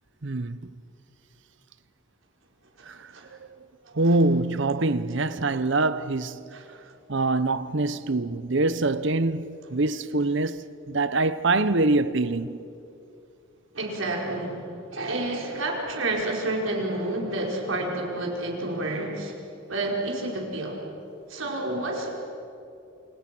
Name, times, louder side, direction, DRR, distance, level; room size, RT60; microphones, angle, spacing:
voice 1, 0.2-0.6 2.9-3.4 3.9-6.4 7.1-12.7, right 2 dB, 60° right, 0.9 m, -24 dB
voice 2, 2.8-3.3 6.5-6.6 13.7-19.3 19.7-20.8 21.3-22.1, right 2 dB, 80° right, 5.2 m, -29 dB
28.5 x 27.0 x 6.2 m
head